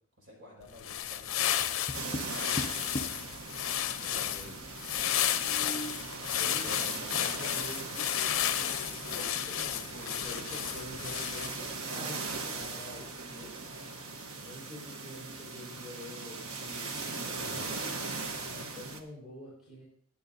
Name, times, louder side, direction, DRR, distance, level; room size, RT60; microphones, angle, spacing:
voice 1, 0.2-1.8 2.0-3.4 3.8-4.6 6.4-6.7 9.6-10.8 12.4-13.7 18.3-18.7, equal, 60° right, -3 dB, 5.9 m, -52 dB
sound 1, 0.7-11.7, left 11 dB, 70° left, 0.7 m, -32 dB
Tap, 1.6-3.3 5.3-6.1, equal, 20° left, 0.7 m, -39 dB
sound 2, 1.9-19.0, right 3 dB, 80° right, 1.2 m, -40 dB
voice 2, 6.4-13.0 13.4-13.5 14.3-19.8, left 1 dB, ahead, -9 dB, 5.6 m, -47 dB
20.5 x 8.8 x 2.7 m, 0.63 s
head